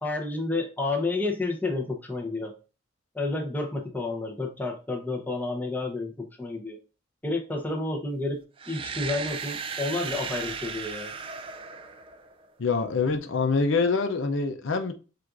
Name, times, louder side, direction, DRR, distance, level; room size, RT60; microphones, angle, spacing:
voice 1, 0.0-2.5 3.1-6.8 7.2-8.4 8.7-11.1, left 2 dB, 10° left, 0.8 m, -30 dB
sound 1, 8.6-12.5, right 5 dB, 25° right, 0.4 m, -36 dB
voice 2, 12.6-14.9, left 4 dB, 75° left, 0.6 m, -25 dB
7.5 x 2.5 x 2.5 m
head